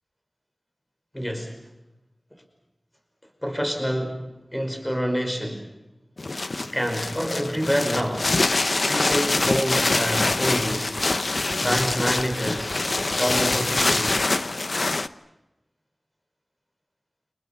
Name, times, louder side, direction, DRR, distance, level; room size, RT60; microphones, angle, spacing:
voice 1, 1.1-1.6 3.4-5.7 6.5-8.3 8.9-11.0 11.6-12.8 13.1-14.3, equal, 10° left, 4 dB, 5.3 m, -27 dB
sound 1, 6.2-15.1, left 2 dB, 65° left, 1.0 m, -24 dB
sound 2, 9.1-14.2, right 3 dB, 85° right, 2.4 m, -40 dB
30.0 x 27.0 x 5.9 m, 0.97 s
wide cardioid pair, 45°, 0 cm